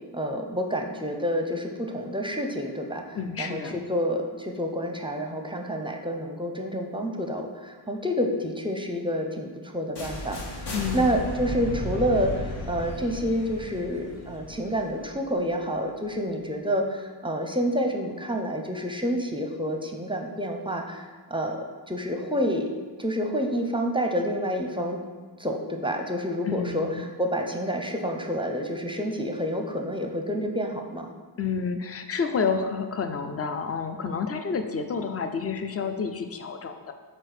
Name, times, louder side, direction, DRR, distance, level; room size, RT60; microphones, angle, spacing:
voice 1, 0.1-12.3 12.7-22.7 23.0-25.0 25.4-31.1, equal, 10° right, 3 dB, 0.6 m, -28 dB
voice 2, 3.1-3.8 10.7-11.2 26.4-27.1 31.4-36.9, left 5 dB, 30° left, 7 dB, 0.6 m, -29 dB
sound 1, 10.0-15.8, left 1 dB, 60° left, 1.2 m, -35 dB
4.5 x 4.3 x 5.0 m, 1.4 s
cardioid pair, 65°, 45 cm